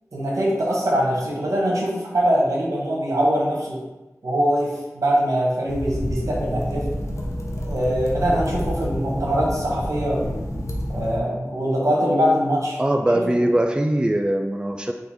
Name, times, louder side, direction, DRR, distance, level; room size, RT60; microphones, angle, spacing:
voice 1, 0.1-3.8 4.2-6.8 7.7-10.2 10.9-12.8 13.1-13.4, equal, 80° right, -4 dB, 1.3 m, -22 dB
sound 1, 5.7-11.2, equal, 65° left, 0.7 m, -28 dB
voice 2, 12.8-14.9, right 1 dB, 15° right, 3 dB, 0.3 m, -21 dB
4.3 x 2.6 x 4.3 m, 1.1 s
wide cardioid pair, 55°, 6 cm